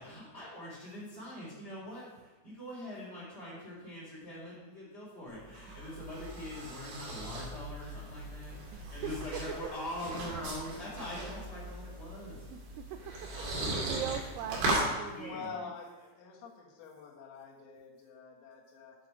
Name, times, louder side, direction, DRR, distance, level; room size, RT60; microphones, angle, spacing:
voice 1, 0.0-12.4 13.0-14.2 15.0-15.5, left 1 dB, 15° left, -6 dB, 3.3 m, -43 dB
sound 1, 5.3-14.9, right 2 dB, 55° right, 4.2 m, -38 dB
voice 2, 8.7-9.1 12.5-12.8 13.7-15.7, right 10 dB, 90° right, 7 dB, 2.6 m, -41 dB
voice 3, 15.3-19.0, left 5 dB, 85° left, -2 dB, 4.4 m, -46 dB
9.3 x 8.2 x 5.0 m, 1.2 s
omnidirectional pair, 5.9 m